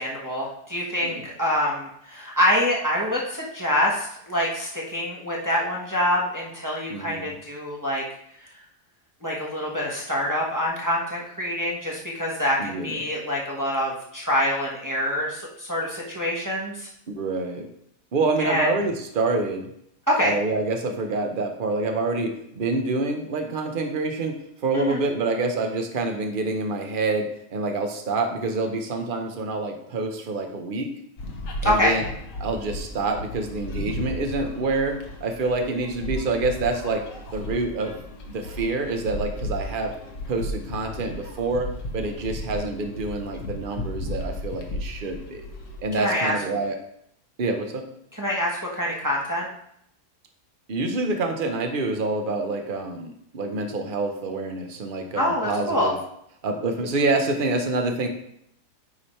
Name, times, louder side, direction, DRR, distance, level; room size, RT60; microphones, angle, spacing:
voice 1, 0.0-8.0 9.2-16.9 18.4-18.7 20.1-20.3 24.7-25.0 31.6-31.9 46.0-46.3 48.1-49.5 55.2-55.9, left 1 dB, 15° right, -4 dB, 1.1 m, -25 dB
voice 2, 6.9-7.3 12.6-13.0 17.1-17.7 18.1-19.7 20.2-30.9 31.6-32.0 32.4-37.0 37.3-38.0 38.3-39.9 40.3-41.7 41.9-45.4 45.8-46.8 47.4-47.9 50.7-56.0 56.4-58.1, right 3 dB, 40° right, 4 dB, 0.9 m, -27 dB
sound 1, 31.2-45.8, left 1 dB, 55° left, 1.3 m, -35 dB
9.7 x 3.4 x 4.4 m, 0.73 s
omnidirectional pair, 1.7 m